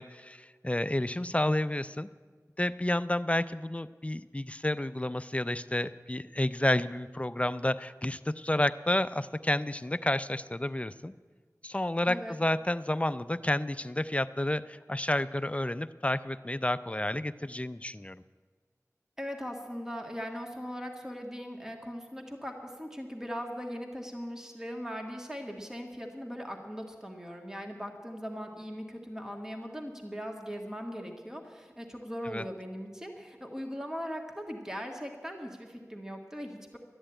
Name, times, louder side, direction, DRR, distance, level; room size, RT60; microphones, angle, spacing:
voice 1, 0.0-2.1 2.6-11.1 11.6-18.2 32.3-32.4, left 1 dB, 20° left, 14 dB, 0.4 m, -30 dB
voice 2, 19.2-36.8, equal, 10° right, 2 dB, 1.7 m, -39 dB
13.0 x 10.5 x 8.8 m, 1.5 s
wide cardioid pair, 55°, 6 cm